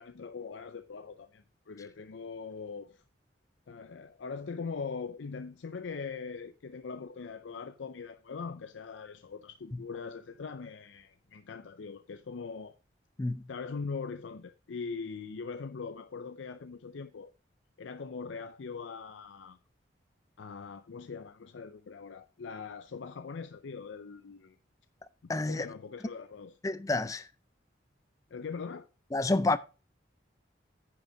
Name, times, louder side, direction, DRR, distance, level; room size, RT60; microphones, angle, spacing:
voice 1, 0.0-3.0 3.7-12.8 13.5-17.3 17.8-19.6 20.4-24.6 25.2-26.5 28.3-28.9, left 5 dB, 85° left, 0.5 m, -41 dB
voice 2, 25.3-25.7 26.6-27.3 29.1-29.6, left 2 dB, 15° left, 0.4 m, -29 dB
9.8 x 5.5 x 5.0 m
head